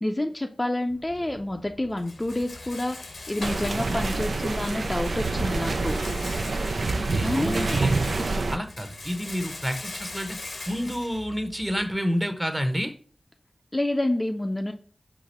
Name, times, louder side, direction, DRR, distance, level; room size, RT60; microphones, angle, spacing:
voice 1, 0.0-3.0 3.3-6.0 7.2-7.8 13.7-14.7, left 1 dB, 25° left, 4 dB, 0.5 m, -28 dB
Rattle, 0.9-11.9, left 2 dB, 90° left, 0.9 m, -41 dB
sound 1, 3.4-8.6, right 3 dB, 80° right, 0.5 m, -27 dB
voice 2, 7.1-7.9 8.5-10.4 10.7-12.9, equal, 15° right, 6 dB, 0.9 m, -29 dB
4.7 x 2.5 x 4.2 m, 0.42 s
wide cardioid pair, 55°, 0 cm